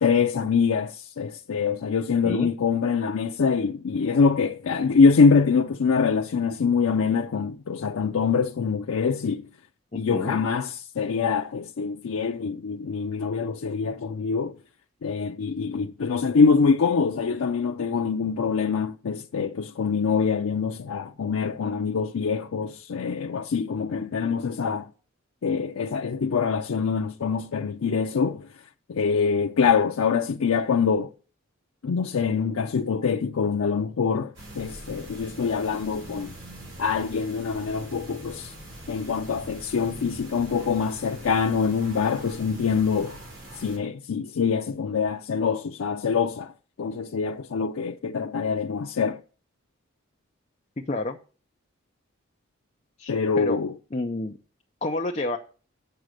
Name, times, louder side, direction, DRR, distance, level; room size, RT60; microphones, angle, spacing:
voice 1, 0.0-9.5 9.9-14.6 15.0-24.9 25.4-28.5 28.9-31.1 31.8-36.3 36.8-38.5 38.9-43.2 43.6-46.5 46.8-49.2 53.1-53.7, left 5 dB, 85° left, 0.5 m, -24 dB
voice 2, 9.9-10.4 39.9-40.0 50.9-51.2 53.0-53.6 53.9-54.4 54.8-55.4, left 2 dB, 30° left, 0.6 m, -29 dB
sound 1, 34.3-43.8, right 1 dB, 60° right, 4.6 m, -43 dB
7.8 x 6.0 x 6.4 m
head